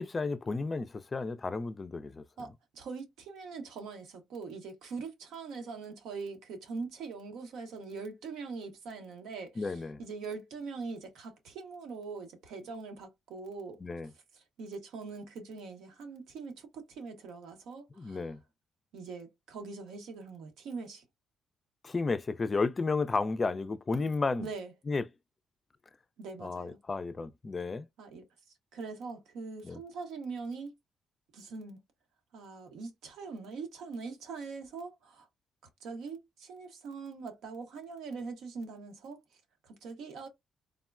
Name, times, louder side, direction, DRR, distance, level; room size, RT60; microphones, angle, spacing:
voice 1, 0.0-2.2 9.6-10.0 13.8-14.1 18.0-18.4 21.8-24.5 24.9-25.1 26.4-27.9 29.6-29.8, left 3 dB, 30° left, 0.3 m, -32 dB
voice 2, 2.4-13.8 14.3-18.3 18.9-21.0 24.4-24.7 26.2-26.8 28.0-28.2 28.7-30.7 31.3-31.8 32.3-35.3 35.8-40.3, right 4 dB, 85° right, 0.9 m, -42 dB
3.5 x 2.1 x 2.3 m
cardioid pair, 90°, 0 cm